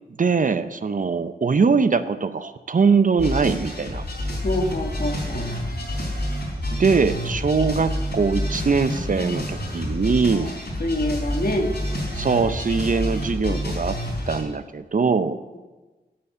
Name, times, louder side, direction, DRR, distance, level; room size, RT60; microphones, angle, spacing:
voice 1, 0.2-4.0 6.7-10.5 12.1-14.0 14.3-15.4, right 5 dB, 50° right, 11 dB, 0.5 m, -22 dB
sound 1, 3.2-14.4, equal, 80° left, 3.9 m, -28 dB
voice 2, 4.4-5.5 10.3-10.5 10.8-11.7 13.4-13.6, left 1 dB, 60° left, 3 dB, 1.6 m, -26 dB
8.5 x 7.1 x 7.1 m, 1.2 s
wide cardioid pair, 60°, 17 cm